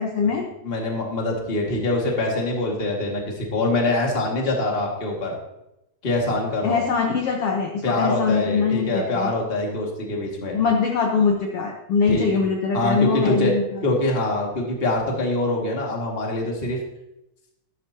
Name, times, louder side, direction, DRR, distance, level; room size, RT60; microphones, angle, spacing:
voice 1, 0.0-0.4 6.6-9.3 10.5-13.6, left 5 dB, 60° left, 1 dB, 1.6 m, -22 dB
voice 2, 0.6-5.4 6.0-6.8 7.8-10.6 12.1-12.3 12.7-13.5 13.8-16.8, left 2 dB, 20° left, -1 dB, 1.7 m, -24 dB
13.0 x 13.0 x 3.0 m, 0.88 s
omnidirectional pair, 4.2 m